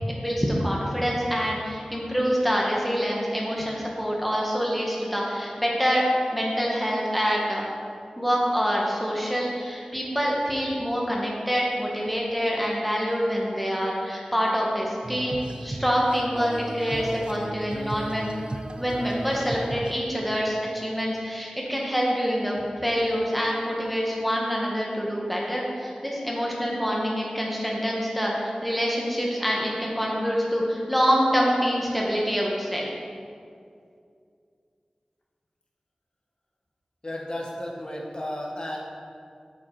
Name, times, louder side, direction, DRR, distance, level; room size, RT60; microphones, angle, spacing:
voice 1, 0.1-6.0 6.3-7.6 8.2-18.3 18.8-32.9, equal, ahead, -3 dB, 1.9 m, -26 dB
Female singing, 15.0-20.5, right 2 dB, 50° right, 0.5 m, -36 dB
voice 2, 37.0-38.8, left 1 dB, 40° left, -2 dB, 1.7 m, -33 dB
8.6 x 6.3 x 4.4 m, 2.3 s
wide cardioid pair, 45°, 2 cm